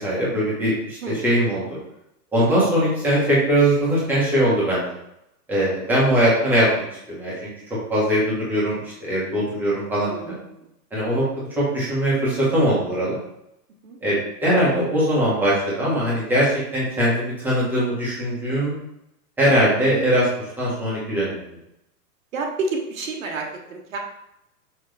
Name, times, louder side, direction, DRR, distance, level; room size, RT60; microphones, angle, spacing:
voice 1, 0.0-1.6 2.3-4.9 5.5-6.7 7.1-7.3 7.9-10.3 10.9-11.2 11.6-13.2 14.0-18.8 19.4-20.3 20.6-21.4, equal, 5° right, -8 dB, 1.2 m, -21 dB
voice 2, 10.0-10.6 13.8-14.0 22.3-24.0, right 3 dB, 55° right, 0 dB, 1.3 m, -30 dB
6.0 x 5.3 x 3.4 m, 0.81 s
hypercardioid pair, 175°, 49 cm